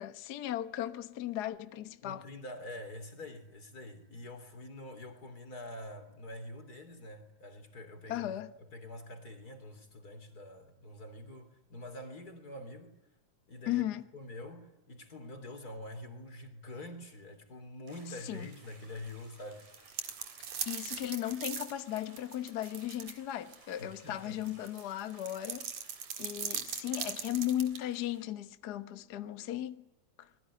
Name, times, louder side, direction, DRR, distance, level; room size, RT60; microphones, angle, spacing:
voice 1, 0.0-2.2 8.1-8.5 13.7-14.1 18.2-18.5 20.7-25.7 26.2-29.8 30.2-30.3, left 12 dB, 75° left, 0.9 m, -36 dB
voice 2, 2.0-13.0 13.5-13.8 14.1-19.7 23.8-24.6, left 1 dB, 30° left, 3.7 m, -46 dB
sound 1, 17.9-28.2, right 3 dB, 85° right, 7.6 m, -59 dB
sound 2, 19.6-23.2 23.5-23.6 24.5-27.8, right 8 dB, 60° right, 2.9 m, -39 dB
27.5 x 21.5 x 10.0 m
omnidirectional pair, 3.6 m